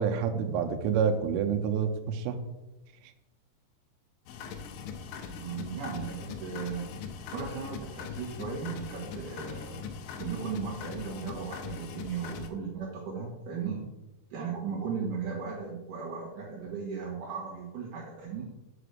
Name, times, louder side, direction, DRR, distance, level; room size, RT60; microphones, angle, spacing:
voice 1, 0.0-2.4, right 7 dB, 90° right, 7 dB, 3.2 m, -28 dB
sound 1, 4.3-12.5, left 6 dB, 85° left, 3.0 m, -41 dB
voice 2, 5.3-7.0 7.3-9.9 10.2-13.9 14.3-18.5, right 6 dB, 70° right, -4 dB, 1.9 m, -36 dB
6.8 x 6.0 x 6.5 m, 1.0 s
omnidirectional pair, 5.7 m